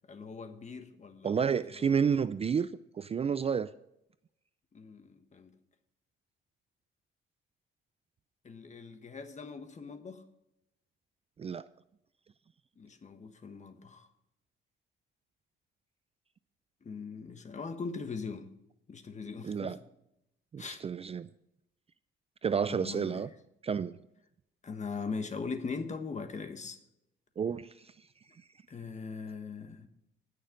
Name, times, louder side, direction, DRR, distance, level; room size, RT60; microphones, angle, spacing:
voice 1, 0.1-1.9 4.7-5.5 8.4-10.2 12.8-14.1 16.8-18.5 18.9-19.8 20.6-20.8 22.7-23.3 24.6-26.8 28.7-29.9, left 4 dB, 35° left, 1.4 m, -41 dB
voice 2, 1.2-2.7 2.9-3.7 11.4-11.7 19.4-19.8 20.5-21.3 22.4-23.3 23.6-24.0 27.4-27.9, right 6 dB, 30° right, 0.4 m, -30 dB
19.5 x 6.6 x 3.9 m
cardioid pair, 90°, 20 cm